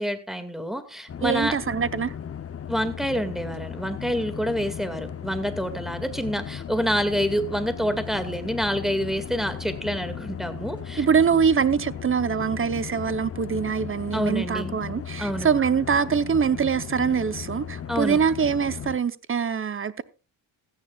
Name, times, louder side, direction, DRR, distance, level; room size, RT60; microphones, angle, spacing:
voice 1, 0.0-1.6 2.7-11.1 14.1-14.8 15.2-15.5 17.9-18.2, equal, ahead, 2.0 m, -27 dB
sound 1, 1.1-19.0, left 8 dB, 30° left, 0.7 m, -36 dB
voice 2, 1.2-2.1 11.0-20.0, right 6 dB, 25° right, 0.8 m, -24 dB
16.5 x 14.5 x 2.4 m
cardioid pair, 120°, 48 cm